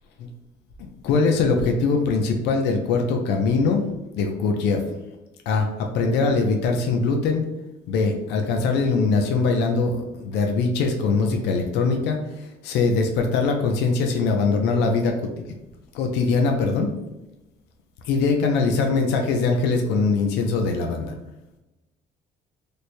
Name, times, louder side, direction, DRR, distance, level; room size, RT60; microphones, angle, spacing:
voice 1, 0.8-3.8 4.2-4.8 5.5-7.4 7.9-12.2 12.6-15.1 15.9-16.9 18.0-21.1, left 4 dB, 85° left, 3 dB, 0.6 m, -22 dB
3.3 x 2.1 x 4.2 m, 0.98 s
cardioid pair, 110°, 17 cm